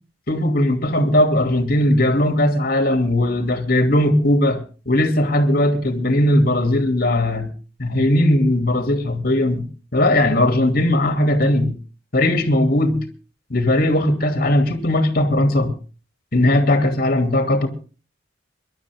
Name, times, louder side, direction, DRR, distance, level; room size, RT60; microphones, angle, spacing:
voice 1, 0.3-4.6 4.9-7.5 7.8-9.7 9.9-11.7 12.1-13.1 13.5-15.7 16.3-17.7, left 1 dB, 50° left, 2.8 m, -18 dB
23.5 x 12.0 x 3.6 m
head